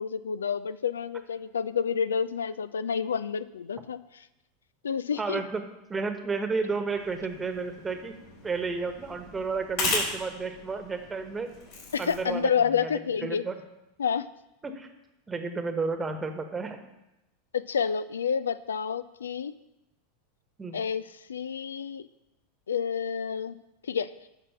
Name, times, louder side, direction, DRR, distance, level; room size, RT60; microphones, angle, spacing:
voice 1, 0.0-4.0 4.8-5.4 11.9-13.4 14.0-14.3 17.5-19.5 20.7-21.0 21.3-22.1 22.7-24.1, left 7 dB, 75° left, 16 dB, 0.3 m, -29 dB
voice 2, 5.2-5.6 5.9-8.1 8.4-11.5 12.0-12.9 13.2-13.5 14.6-14.9 15.3-16.8 20.6-20.8, right 4 dB, 20° right, 7 dB, 1.2 m, -32 dB
sound 1, 7.0-12.4, left 3 dB, 60° left, 4.3 m, -36 dB
10.0 x 6.0 x 5.8 m, 0.93 s
figure-of-eight pair, 85°, 0 cm